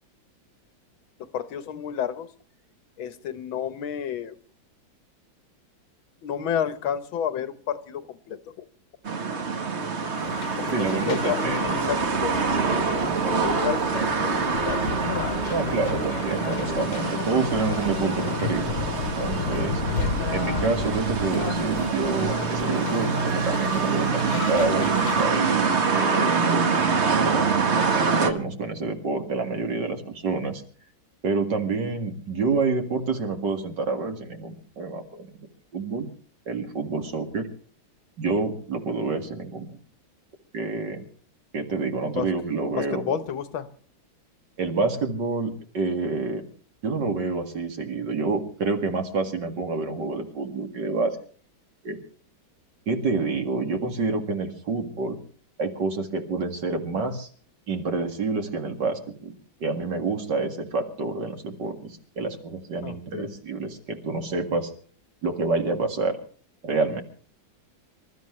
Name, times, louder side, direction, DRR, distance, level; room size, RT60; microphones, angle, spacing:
voice 1, 1.3-2.3 3.0-4.4 6.2-8.7 10.6-12.4 13.0-13.8 14.4-14.8 42.1-42.3 42.8-43.7 62.8-63.3, left 8 dB, 90° left, 1.9 m, -31 dB
sound 1, 9.0-28.3, right 5 dB, 40° right, 1.3 m, -25 dB
sound 2, 10.2-25.2, left 6 dB, 60° left, 1.4 m, -32 dB
voice 2, 10.7-11.8 15.5-18.7 19.0-19.8 20.3-26.6 27.1-27.5 28.0-30.6 31.2-35.3 35.7-36.1 36.5-37.5 38.2-39.7 40.5-41.0 41.5-43.2 44.6-46.5 46.8-51.2 51.8-52.0 52.9-55.2 55.6-57.3 57.7-59.4 59.6-64.7 65.2-66.2 66.6-67.0, right 3 dB, 65° right, 2.6 m, -28 dB
sound 3, 11.6-19.1, left 1 dB, 20° left, 1.3 m, -39 dB
26.5 x 13.5 x 3.2 m
omnidirectional pair, 2.1 m